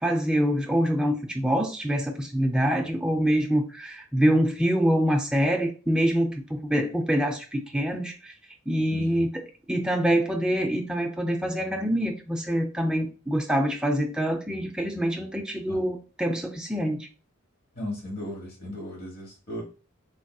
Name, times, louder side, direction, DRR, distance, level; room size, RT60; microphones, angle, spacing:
voice 1, 0.0-8.3 8.7-9.3 9.7-17.1, equal, 5° right, 2 dB, 0.4 m, -25 dB
voice 2, 8.9-9.3 15.7-15.8 17.7-19.6, left 1 dB, 45° left, -1 dB, 1.2 m, -36 dB
3.4 x 2.7 x 2.3 m, 0.34 s
head